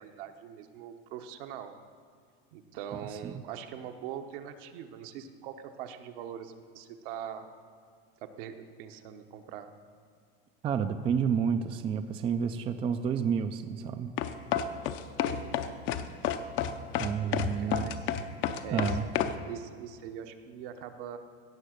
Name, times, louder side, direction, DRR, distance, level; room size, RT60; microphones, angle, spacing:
voice 1, 0.0-1.7 2.5-7.5 8.2-9.7 15.2-15.9 17.2-18.1 18.6-19.0 19.3-21.2, right 9 dB, 65° right, 6 dB, 1.1 m, -42 dB
voice 2, 10.6-14.1 16.9-18.0 18.7-19.0, right 7 dB, 20° right, 9 dB, 0.4 m, -30 dB
sound 1, 14.2-19.4, left 9 dB, 40° left, 0.6 m, -30 dB
17.0 x 6.7 x 6.5 m, 2.1 s
supercardioid pair, 145°, 29 cm